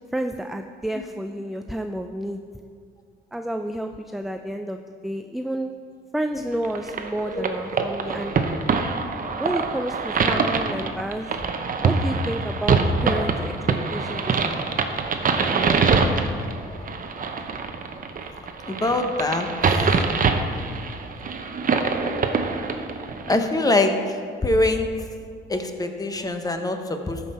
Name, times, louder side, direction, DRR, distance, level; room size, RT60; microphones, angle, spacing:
voice 1, 0.1-2.4 3.3-5.7 6.1-8.4 9.4-11.5 11.8-14.4, right 1 dB, ahead, 6 dB, 0.4 m, -30 dB
sound 1, 6.6-23.4, right 4 dB, 45° right, 0.8 m, -24 dB
voice 2, 18.7-19.5 23.3-24.9 25.5-27.2, left 2 dB, 20° left, 6 dB, 1.0 m, -24 dB
14.0 x 5.5 x 4.3 m, 2.1 s
cardioid pair, 90°, 20 cm